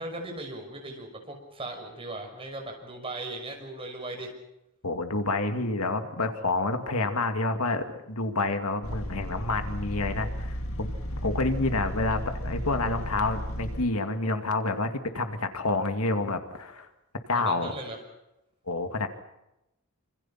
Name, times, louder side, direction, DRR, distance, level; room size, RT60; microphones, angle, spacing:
voice 1, 0.0-4.3 17.3-18.0, right 2 dB, 25° right, 2 dB, 6.0 m, -38 dB
voice 2, 4.8-16.9 17.3-17.7 18.7-19.1, left 2 dB, 85° left, 6 dB, 2.3 m, -28 dB
sound 1, 8.8-13.8, equal, 70° left, 2.5 m, -34 dB
26.5 x 26.0 x 5.9 m, 0.90 s
head